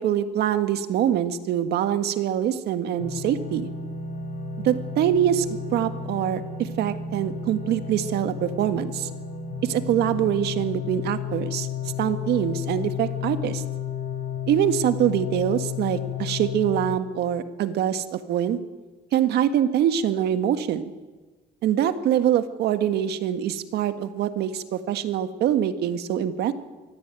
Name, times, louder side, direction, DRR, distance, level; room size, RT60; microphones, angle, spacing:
voice 1, 0.0-3.7 4.6-5.4 5.7-9.1 9.6-11.7 12.0-13.6 14.5-18.6 19.1-20.9 21.6-26.5, right 10 dB, 75° right, 9 dB, 1.7 m, -24 dB
sound 1, 3.0-17.0, left 6 dB, 50° left, 3.7 m, -32 dB
23.5 x 16.0 x 9.1 m, 1.3 s
cardioid pair, 110°, 17 cm